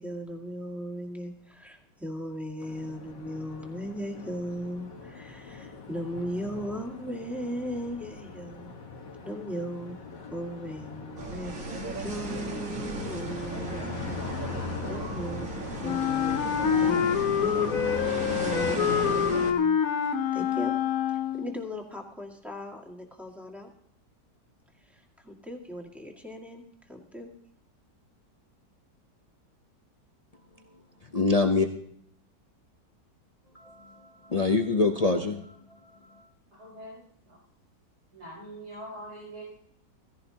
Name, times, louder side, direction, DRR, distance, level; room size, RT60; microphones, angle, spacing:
voice 1, 0.0-8.7 9.2-10.0 10.3-20.7 21.3-23.7 24.8-27.3, equal, ahead, 0 dB, 1.8 m, -37 dB
sound 1, 2.6-19.1, left 4 dB, 80° left, 2.2 m, -40 dB
sound 2, 11.2-19.5, right 3 dB, 50° right, 1.9 m, -36 dB
Wind instrument woodwind instrument, 15.8-21.6, left 8 dB, 60° left, 1.0 m, -26 dB
voice 2, 31.0-31.7 33.5-36.2, left 3 dB, 45° left, 3 dB, 0.4 m, -26 dB
voice 3, 36.5-37.4 38.1-39.6, right 1 dB, 65° right, -8 dB, 7.5 m, -43 dB
16.5 x 16.0 x 2.9 m, 0.66 s
omnidirectional pair, 1.9 m